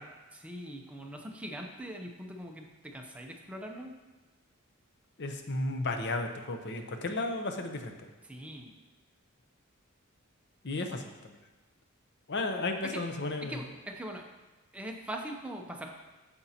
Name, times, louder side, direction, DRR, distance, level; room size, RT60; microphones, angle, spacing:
voice 1, 0.3-3.9 8.2-8.7 12.8-13.0 13.4-14.3 14.7-15.9, right 1 dB, 5° right, 1 dB, 0.7 m, -41 dB
voice 2, 5.2-7.9 10.6-11.4 12.3-13.6, left 2 dB, 55° left, 5 dB, 0.8 m, -34 dB
8.9 x 6.9 x 2.9 m, 1.2 s
head